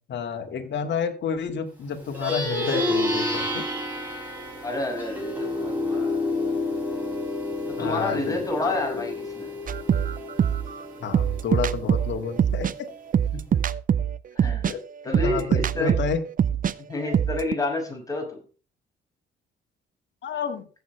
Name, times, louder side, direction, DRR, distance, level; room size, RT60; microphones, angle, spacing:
voice 1, 0.1-3.6 7.8-8.5 11.0-12.9 14.6-14.8 15.2-16.2 20.2-20.7, left 6 dB, 65° left, 5 dB, 2.3 m, -30 dB
Plucked string instrument, 2.0-11.7, left 2 dB, 10° right, 6.8 m, -29 dB
voice 2, 4.6-6.1 7.7-9.5 13.3-13.4 14.3-14.7 15.0-16.0 16.9-18.4, left 2 dB, 15° left, 1 dB, 6.0 m, -29 dB
sound 1, 9.7-16.7 17.0-17.5, right 8 dB, 45° right, 0.6 m, -24 dB
15.0 x 8.6 x 3.4 m, 0.37 s
cardioid pair, 90°, 20 cm